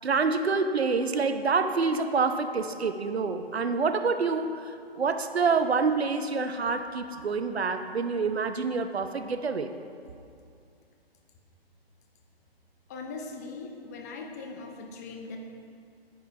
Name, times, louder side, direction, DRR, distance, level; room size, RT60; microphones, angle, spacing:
voice 1, 0.0-4.6 4.9-9.7, right 4 dB, 90° right, 9 dB, 0.7 m, -27 dB
voice 2, 12.9-15.4, left 4 dB, 15° left, 2 dB, 0.5 m, -40 dB
9.8 x 8.6 x 2.7 m, 2.4 s
figure-of-eight pair, 135°, 31 cm